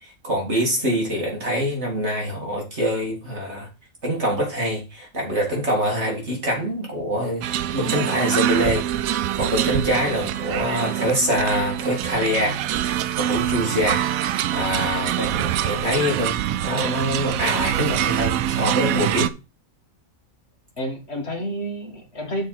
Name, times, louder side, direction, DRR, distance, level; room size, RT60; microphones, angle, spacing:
voice 1, 0.0-3.7 4.0-12.6 13.2-14.0 14.5-19.3, equal, 55° right, -1 dB, 2.9 m, -25 dB
sound 1, 7.4-19.3, right 11 dB, 85° right, 1.0 m, -25 dB
voice 2, 20.8-22.5, equal, 50° left, 3 dB, 1.8 m, -30 dB
6.7 x 4.5 x 5.8 m, 0.28 s
omnidirectional pair, 1.4 m